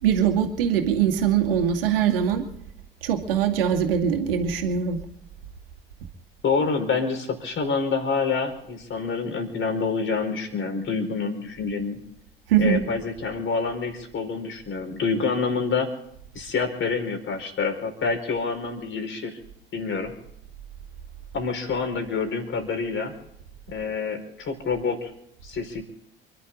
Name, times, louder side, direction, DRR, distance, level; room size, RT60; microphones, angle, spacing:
voice 1, 0.0-2.4 3.0-5.0 12.5-12.8, right 8 dB, 70° right, 3 dB, 2.4 m, -22 dB
voice 2, 6.4-12.0 12.6-15.9 16.3-19.3 19.7-20.1 21.3-23.1 23.7-25.1 25.4-25.8, left 4 dB, 45° left, 5 dB, 4.9 m, -27 dB
29.0 x 11.5 x 3.8 m, 0.76 s
figure-of-eight pair, 55°, 29 cm